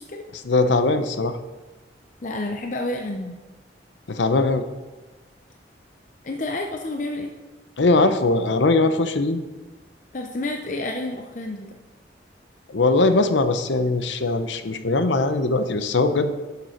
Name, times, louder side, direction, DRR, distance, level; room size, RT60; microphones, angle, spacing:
voice 1, 0.3-1.4 4.1-4.6 7.8-9.4 12.7-16.3, left 3 dB, 85° left, 9 dB, 0.7 m, -20 dB
voice 2, 2.2-3.4 6.2-7.3 10.1-11.7, left 2 dB, 45° left, 3 dB, 0.6 m, -29 dB
11.0 x 6.8 x 4.5 m, 1.2 s
head